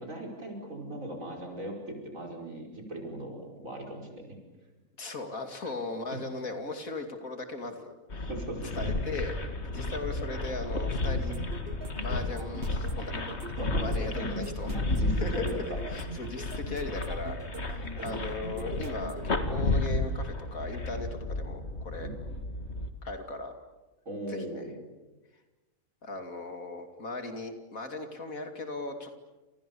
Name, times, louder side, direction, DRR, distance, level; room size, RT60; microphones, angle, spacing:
voice 1, 0.0-4.3 5.6-5.7 6.1-6.3 8.3-8.8 13.6-15.8 18.0-18.2 22.0-22.1 24.1-24.8, right 1 dB, 60° right, 1 dB, 5.7 m, -38 dB
voice 2, 5.0-8.3 8.7-9.4 9.6-11.4 12.0-13.3 13.8-14.7 15.2-15.3 15.9-17.4 17.7-22.1 23.0-23.5 24.3-24.6 26.0-29.2, left 3 dB, 65° left, 6 dB, 3.0 m, -38 dB
sound 1, 8.1-22.9, left 2 dB, 45° left, 2.2 m, -33 dB
sound 2, 11.1-19.3, right 3 dB, 40° right, 1.5 m, -43 dB
29.5 x 28.0 x 7.0 m, 1.1 s
omnidirectional pair, 1.6 m